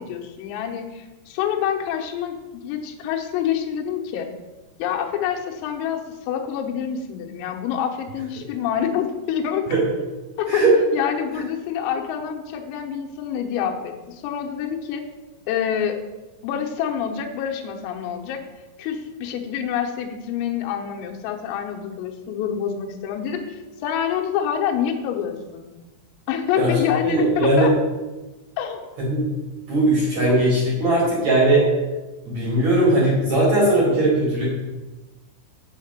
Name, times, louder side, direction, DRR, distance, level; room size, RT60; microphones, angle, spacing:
voice 1, 0.0-4.3 4.8-9.7 10.4-10.6 10.9-15.0 15.5-16.0 16.4-18.4 18.8-25.7 26.3-27.7 28.6-29.0, left 8 dB, 90° left, 3 dB, 3.6 m, -27 dB
voice 2, 27.0-27.7 29.1-29.2 29.7-31.7 32.2-34.5, right 2 dB, 45° right, -5 dB, 2.7 m, -19 dB
8.0 x 5.8 x 7.5 m, 1.2 s
omnidirectional pair, 6.0 m